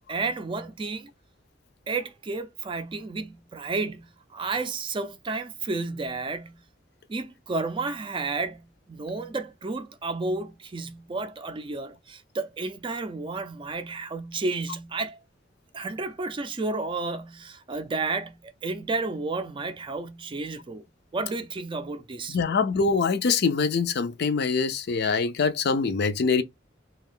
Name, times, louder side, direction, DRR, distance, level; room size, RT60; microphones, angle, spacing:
voice 1, 0.1-1.1 1.9-6.6 7.1-15.2 15.7-20.8 21.1-22.6, right 3 dB, 25° right, 0.4 m, -32 dB
voice 2, 22.3-26.4, left 5 dB, 60° left, 0.5 m, -24 dB
2.4 x 2.3 x 3.6 m
head